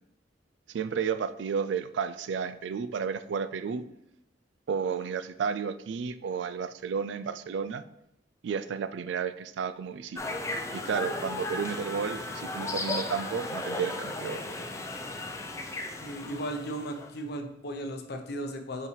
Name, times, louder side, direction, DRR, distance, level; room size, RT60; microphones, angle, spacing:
voice 1, 0.7-3.8 4.7-7.8 8.4-10.3 10.7-14.4, right 6 dB, 75° right, 13 dB, 0.3 m, -32 dB
sound 1, 10.2-17.1, left 2 dB, 15° left, 0.5 m, -35 dB
voice 2, 16.0-18.9, right 1 dB, 60° left, 5 dB, 0.7 m, -36 dB
5.4 x 5.4 x 3.2 m, 0.82 s
head